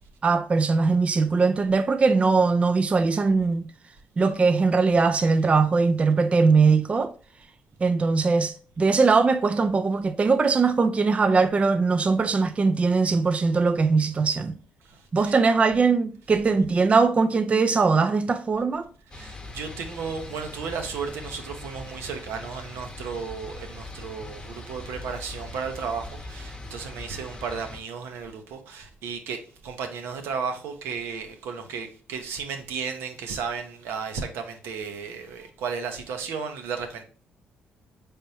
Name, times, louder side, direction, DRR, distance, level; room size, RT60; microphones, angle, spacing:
voice 1, 0.2-3.7 4.2-7.1 7.8-14.5 15.1-18.8, right 4 dB, 30° right, 0.3 m, -21 dB
voice 2, 14.9-15.3 19.1-37.0, right 5 dB, 80° right, 0.7 m, -34 dB
sound 1, 19.1-27.8, left 2 dB, 20° left, 0.8 m, -41 dB
4.1 x 3.5 x 2.7 m
supercardioid pair, 65°, 4 cm